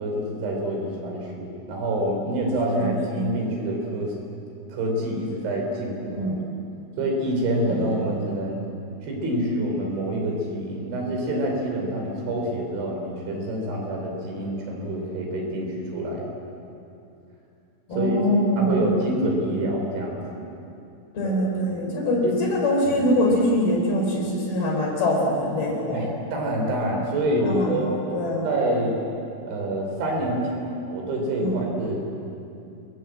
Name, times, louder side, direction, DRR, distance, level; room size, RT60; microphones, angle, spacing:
voice 1, 0.0-4.1 4.7-6.3 7.0-8.6 9.0-16.3 17.9-18.2 18.6-20.4 21.2-21.4 22.2-22.4 23.0-23.1 25.9-27.9 28.4-29.0 29.5-32.0, right 1 dB, 75° right, 1 dB, 6.8 m, -27 dB
voice 2, 2.8-3.2 6.2-6.4 7.8-8.1 17.9-19.0 21.1-26.1 27.4-28.5 31.4-31.6, equal, 55° left, 0 dB, 6.3 m, -24 dB
28.0 x 22.0 x 7.8 m, 2.7 s
omnidirectional pair, 5.4 m